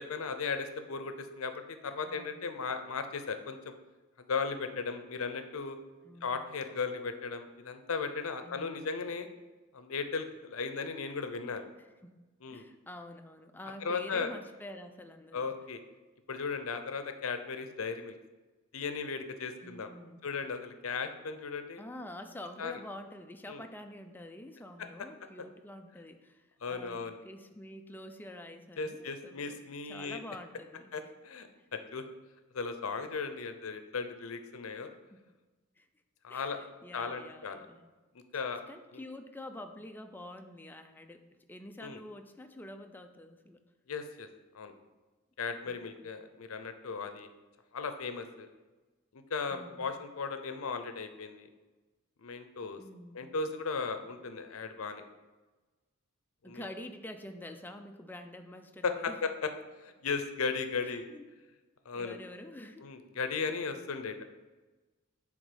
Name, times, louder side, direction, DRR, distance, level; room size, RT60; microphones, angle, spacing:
voice 1, 0.0-3.7 4.2-5.8 6.2-9.3 9.7-11.7 12.4-12.7 13.8-14.3 15.3-15.8 16.3-18.1 18.7-19.9 20.2-21.8 22.6-22.7 23.5-23.6 25.0-25.1 26.6-27.2 28.8-30.2 30.9-32.0 32.5-34.9 36.2-36.6 36.9-37.6 38.1-38.6 38.9-39.0 41.8-42.0 43.9-44.3 44.5-44.7 45.4-47.3 47.7-48.5 49.1-51.5 52.2-52.8 53.1-55.0 56.5-56.7 58.8-59.5 59.8-61.1 61.9-62.2 62.8-64.2, left 5 dB, 85° left, 8 dB, 0.6 m, -36 dB
voice 2, 2.0-2.4 6.0-6.4 8.4-9.1 12.0-12.2 12.5-15.5 19.6-20.2 21.8-29.6 29.9-31.0 35.1-35.2 35.8-35.9 36.3-37.8 38.7-43.6 45.7-46.0 49.5-49.9 52.8-53.3 56.4-59.2 60.8-61.3 61.9-62.9, left 1 dB, 10° left, 6 dB, 0.4 m, -47 dB
8.0 x 3.6 x 5.1 m, 1.2 s
head